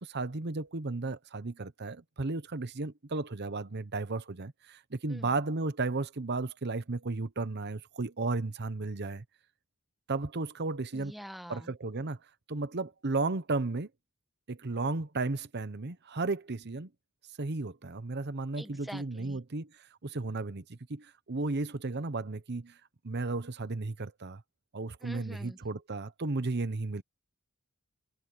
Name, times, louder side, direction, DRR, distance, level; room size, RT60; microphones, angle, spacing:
voice 1, 0.0-9.2 10.1-11.1 11.5-12.2 12.5-13.9 14.5-16.9 17.4-22.8 23.0-24.4 24.7-27.0, right 3 dB, 50° right, 0.9 m, -34 dB
voice 2, 10.9-11.7 18.6-19.4 25.0-25.6, equal, ahead, 1.5 m, -46 dB
head